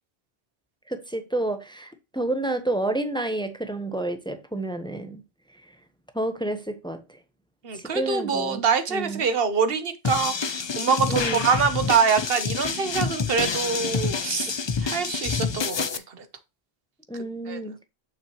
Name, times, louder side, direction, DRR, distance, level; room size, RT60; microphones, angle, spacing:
voice 1, 0.9-5.2 6.1-7.0 7.7-8.6 8.9-9.2 11.1-11.5 17.1-17.9, right 2 dB, 5° left, 0.8 m, -29 dB
voice 2, 7.6-16.3 17.5-17.6, right 6 dB, 65° right, 1.1 m, -25 dB
sound 1, 10.0-16.0, left 5 dB, 45° left, 0.3 m, -28 dB
7.1 x 6.0 x 3.0 m
omnidirectional pair, 1.1 m